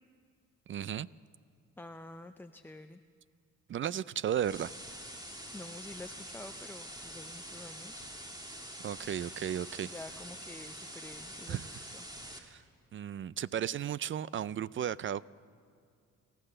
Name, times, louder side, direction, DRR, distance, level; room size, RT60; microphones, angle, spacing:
voice 1, 0.7-1.1 3.7-4.7 8.8-9.9 11.5-11.7 12.4-12.6 12.9-15.2, right 10 dB, 40° right, 0.4 m, -34 dB
voice 2, 1.8-3.0 5.5-8.1 9.8-12.0, left 2 dB, 5° left, 0.5 m, -48 dB
sound 1, 4.3-12.4, right 1 dB, 15° right, 2.1 m, -46 dB
29.0 x 14.0 x 6.7 m
cardioid pair, 90°, 30 cm